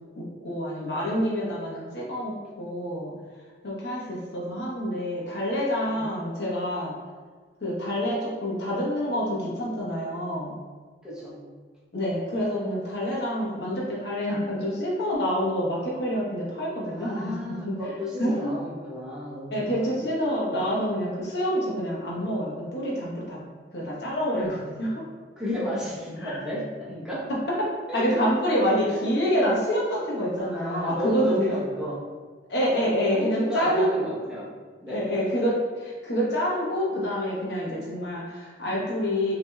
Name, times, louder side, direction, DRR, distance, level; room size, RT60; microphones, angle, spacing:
voice 1, 0.1-3.1 3.6-6.9 7.6-10.5 11.9-17.8 18.2-18.5 19.5-23.4 23.7-25.1 26.2-26.4 27.5-27.7 27.9-31.6 32.5-34.1 34.9-39.3, equal, 65° left, -6 dB, 1.1 m, -27 dB
voice 2, 11.0-11.4 16.9-19.9 25.4-27.3 27.9-28.3 28.8-29.1 30.5-32.0 33.1-34.5 34.8-35.0, left 1 dB, 5° right, -7 dB, 0.9 m, -32 dB
4.9 x 2.9 x 2.3 m, 1.5 s
head